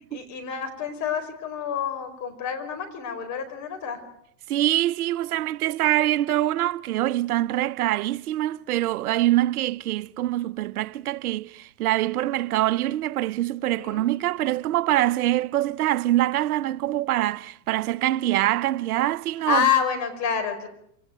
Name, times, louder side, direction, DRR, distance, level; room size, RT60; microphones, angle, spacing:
voice 1, 0.1-4.0 13.6-14.1 19.5-20.7, left 8 dB, 35° left, 4.9 m, -28 dB
voice 2, 4.5-19.7, right 14 dB, 70° right, 0.9 m, -24 dB
26.5 x 18.5 x 9.2 m
hypercardioid pair, 125°, 47 cm